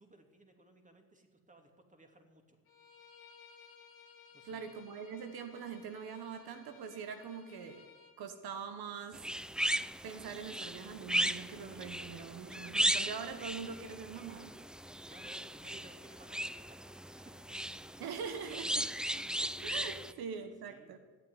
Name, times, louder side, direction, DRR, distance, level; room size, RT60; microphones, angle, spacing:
voice 1, 0.0-2.6 4.3-4.7 15.1-16.8 17.1-17.6 19.9-21.0, right 2 dB, 20° right, 4 dB, 2.9 m, -60 dB
Bowed string instrument, 2.7-8.2, left 6 dB, 80° left, 1.8 m, -59 dB
voice 2, 4.4-7.9 8.2-9.3 10.0-14.6 18.0-18.9 19.4-21.0, right 6 dB, 85° right, 9 dB, 1.2 m, -43 dB
sound 1, 9.1-20.1, right 1 dB, ahead, 0.4 m, -37 dB
14.0 x 9.0 x 9.8 m, 1.5 s
cardioid pair, 65°, 36 cm